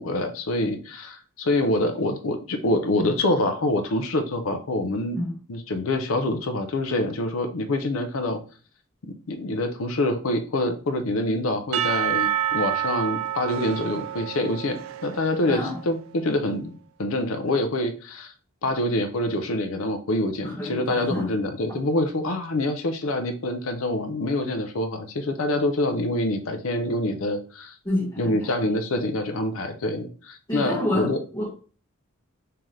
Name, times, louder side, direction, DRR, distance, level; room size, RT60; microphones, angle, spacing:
voice 1, 0.0-5.2 5.5-8.4 9.0-16.7 17.0-18.3 18.6-27.8 28.2-31.2, left 1 dB, 75° left, 7 dB, 0.6 m, -26 dB
Percussion / Church bell, 11.7-15.9, right 10 dB, 75° right, 0.3 m, -28 dB
voice 2, 15.5-15.8 20.4-21.3 27.8-28.4 30.5-31.5, left 1 dB, 20° left, -8 dB, 1.4 m, -28 dB
3.7 x 2.8 x 3.1 m, 0.39 s
head